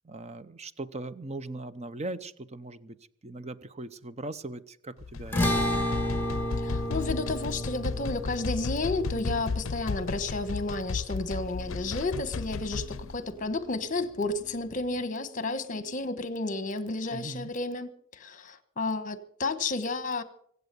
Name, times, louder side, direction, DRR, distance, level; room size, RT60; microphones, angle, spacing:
voice 1, 0.0-3.0 3.2-5.9 9.1-9.4 17.1-17.5, right 2 dB, 30° right, 0.7 m, -40 dB
sound 1, 5.0-13.2, left 4 dB, 65° left, 0.5 m, -34 dB
sound 2, 5.3-11.8, left 1 dB, 10° left, 2.5 m, -32 dB
voice 2, 6.6-20.2, left 3 dB, 40° left, 1.3 m, -32 dB
Keyboard (musical), 11.3-17.3, left 1 dB, 65° right, 5.2 m, -57 dB
24.5 x 8.2 x 6.9 m
head